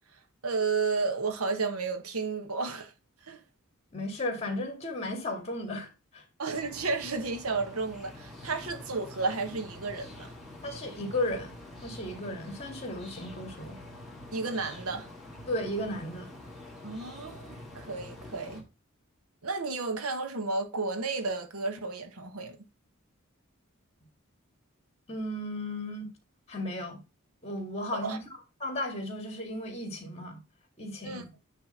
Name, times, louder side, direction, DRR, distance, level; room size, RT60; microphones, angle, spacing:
voice 1, 0.4-2.9 3.3-3.4 6.4-10.3 14.3-15.1 16.8-18.6 19.4-22.6 27.9-28.2 31.0-31.2, right 4 dB, 85° right, 1.2 m, -32 dB
voice 2, 3.9-5.9 6.1-6.2 10.6-11.5 11.8-13.8 15.5-16.3 25.1-26.1 26.5-27.0 27.4-28.2 28.6-30.4 30.8-31.3, left 1 dB, 30° left, 2.2 m, -34 dB
sound 1, 6.5-18.6, left 1 dB, ahead, 2.2 m, -46 dB
9.2 x 3.4 x 5.5 m
head